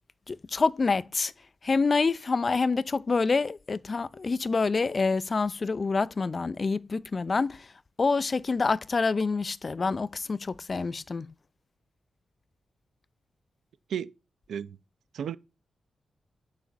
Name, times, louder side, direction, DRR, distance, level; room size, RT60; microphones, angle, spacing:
voice 1, 0.3-1.3 1.6-7.7 8.0-11.3, left 4 dB, 35° left, 0.5 m, -27 dB
voice 2, 13.9-14.1 14.5-14.8 15.1-15.4, right 8 dB, 85° right, 0.7 m, -33 dB
9.4 x 5.1 x 7.3 m
wide cardioid pair, 125°, 0 cm